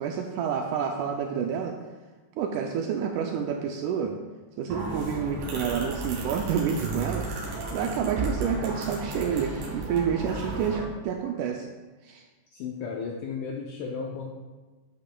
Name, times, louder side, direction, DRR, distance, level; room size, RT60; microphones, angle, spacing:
voice 1, 0.0-1.8 2.4-4.2 4.6-7.3 7.7-11.7 12.0-12.2, right 7 dB, 90° right, 3 dB, 1.7 m, -29 dB
sound 1, 4.7-10.8, right 2 dB, 70° right, 3.3 m, -34 dB
voice 2, 12.5-14.3, left 5 dB, 80° left, -1 dB, 1.8 m, -34 dB
10.5 x 8.0 x 2.2 m, 1.3 s
omnidirectional pair, 4.1 m